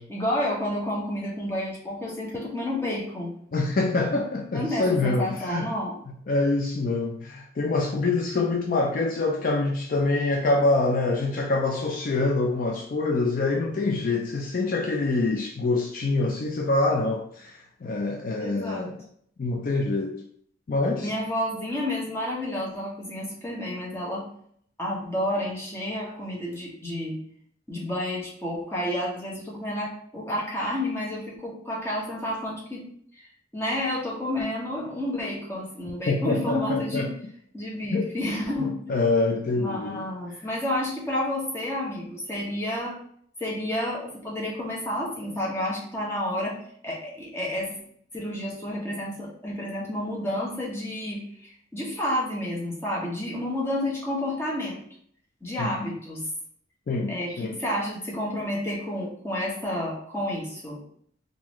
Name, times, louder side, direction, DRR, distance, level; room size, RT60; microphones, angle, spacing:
voice 1, 0.1-3.3 4.5-6.0 18.4-18.9 21.0-24.3 24.8-27.2 27.7-32.9 33.5-37.1 37.5-38.9 39.5-43.0 43.4-46.6 46.8-47.8 48.1-54.8 55.4-56.2 57.1-60.8, left 1 dB, 15° left, -4 dB, 0.9 m, -30 dB
voice 2, 3.5-5.7 6.3-19.0 19.4-20.2 20.7-21.1 36.1-37.1 37.9-38.1 38.6-40.4 55.6-55.9 56.9-57.6, left 3 dB, 45° left, 1 dB, 0.3 m, -25 dB
3.7 x 2.5 x 3.0 m, 0.63 s
head